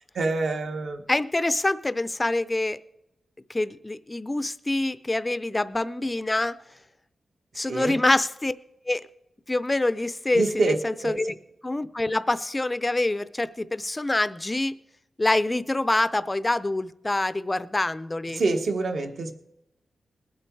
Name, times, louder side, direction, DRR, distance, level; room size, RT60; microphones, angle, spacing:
voice 1, 0.1-1.0 7.6-8.0 10.3-10.8 11.0-11.2 18.3-19.3, right 3 dB, 60° right, 5 dB, 1.2 m, -26 dB
voice 2, 1.1-2.8 3.5-6.6 7.5-8.5 8.9-9.1 9.5-11.3 11.6-14.7 15.2-18.4, left 2 dB, 15° left, 14 dB, 0.5 m, -26 dB
21.0 x 7.7 x 4.6 m, 0.86 s
wide cardioid pair, 140°, 0 cm